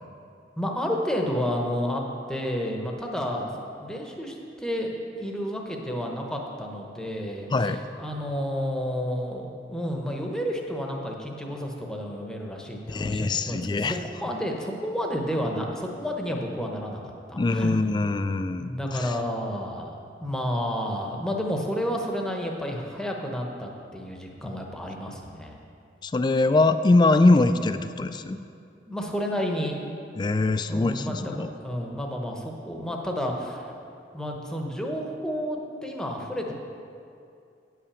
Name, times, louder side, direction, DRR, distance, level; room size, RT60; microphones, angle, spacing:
voice 1, 0.6-17.7 18.6-25.6 28.9-29.8 30.7-33.7 34.1-36.5, equal, 5° left, 1 dB, 0.8 m, -31 dB
voice 2, 12.9-14.0 17.3-19.1 26.0-28.4 30.2-31.5, left 2 dB, 25° left, 10 dB, 0.3 m, -23 dB
9.1 x 5.8 x 7.0 m, 2.5 s
head